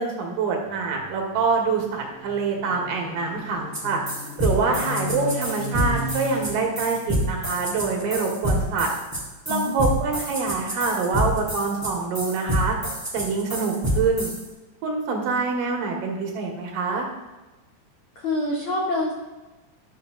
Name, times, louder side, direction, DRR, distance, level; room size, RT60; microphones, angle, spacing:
voice 1, 0.0-4.0 4.4-8.9 9.5-12.8 13.1-14.3 14.8-17.0, right 4 dB, 75° right, 1 dB, 3.0 m, -25 dB
sound 1, 0.7-8.3, left 2 dB, 60° left, 4.1 m, -37 dB
sound 2, 3.7-14.4, equal, 25° right, 0.3 m, -27 dB
voice 2, 18.1-19.1, left 2 dB, 85° left, -1 dB, 1.1 m, -26 dB
12.5 x 6.1 x 3.7 m, 1.1 s
omnidirectional pair, 4.0 m